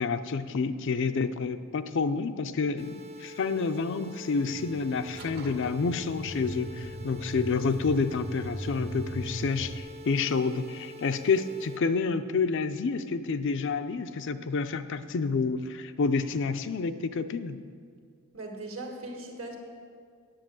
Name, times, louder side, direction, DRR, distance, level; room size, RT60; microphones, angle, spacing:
voice 1, 0.0-17.6, left 4 dB, 60° left, 10 dB, 0.5 m, -29 dB
sound 1, 2.8-11.8, equal, 30° right, 0.5 m, -46 dB
sound 2, 4.5-9.8, equal, 45° right, 0.9 m, -39 dB
voice 2, 18.3-19.6, right 2 dB, 70° right, 1 dB, 1.7 m, -39 dB
8.8 x 7.6 x 7.5 m, 2.2 s
head